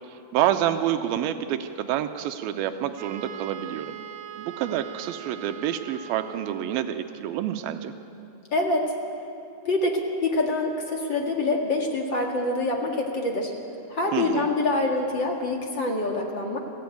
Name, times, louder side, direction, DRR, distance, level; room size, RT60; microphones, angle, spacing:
voice 1, 0.1-4.0 4.4-7.9 14.1-14.5, right 11 dB, 85° right, 8 dB, 2.6 m, -28 dB
Wind instrument woodwind instrument, 3.0-7.0, right 8 dB, 65° right, 2.9 m, -41 dB
voice 2, 8.5-8.9 9.7-13.5 13.9-16.6, left 2 dB, 40° left, 1 dB, 2.0 m, -25 dB
23.0 x 15.0 x 9.2 m, 2.9 s
omnidirectional pair, 4.2 m